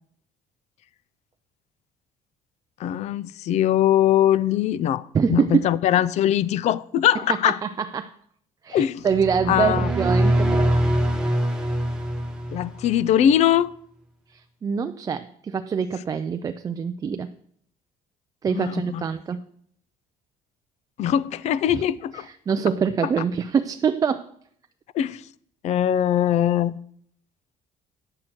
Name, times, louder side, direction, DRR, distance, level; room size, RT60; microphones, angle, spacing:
voice 1, 2.8-7.6 8.7-9.1 9.5-9.9 12.5-13.7 18.5-19.0 21.0-22.3 24.9-25.2 25.6-26.8, left 11 dB, 55° left, 0.4 m, -21 dB
voice 2, 5.1-5.7 7.4-8.1 8.6-10.8 14.3-17.3 18.4-19.4 21.7-21.8 22.1-24.3, right 6 dB, 25° right, 0.4 m, -25 dB
sound 1, 9.1-13.0, right 1 dB, 5° right, 1.2 m, -23 dB
9.9 x 7.7 x 4.4 m
cardioid pair, 135°, 14 cm